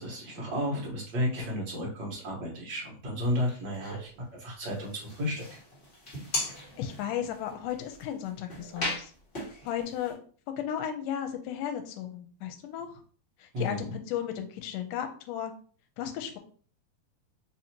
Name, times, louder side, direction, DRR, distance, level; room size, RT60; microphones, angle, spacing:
voice 1, 0.0-5.6 13.5-13.9, left 1 dB, 55° right, -3 dB, 1.2 m, -33 dB
sound 1, 3.2-4.1 4.6-10.1, left 1 dB, 25° left, 1.5 m, -38 dB
voice 2, 6.8-9.1 9.4-10.2 10.6-12.9 13.4-15.5 16.0-16.4, left 10 dB, 85° left, 6 dB, 2.2 m, -35 dB
4.7 x 2.8 x 2.9 m, 0.43 s
omnidirectional pair, 3.7 m